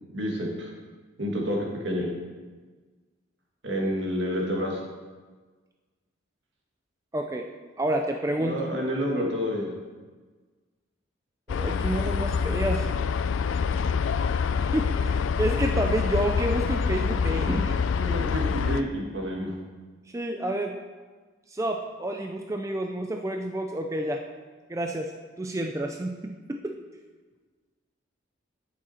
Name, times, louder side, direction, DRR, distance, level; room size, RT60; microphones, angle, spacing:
voice 1, 0.1-0.7 1.2-2.1 3.6-4.8 8.4-9.7 18.0-19.5, equal, 65° right, -1 dB, 1.9 m, -29 dB
voice 2, 7.1-7.5 7.8-8.6 11.5-12.9 14.7-17.8 20.1-20.8 21.5-24.2 24.7-26.8, right 1 dB, 15° right, 3 dB, 0.4 m, -29 dB
sound 1, 11.5-18.8, left 6 dB, 75° left, 0.4 m, -26 dB
10.5 x 6.5 x 4.3 m, 1.4 s
head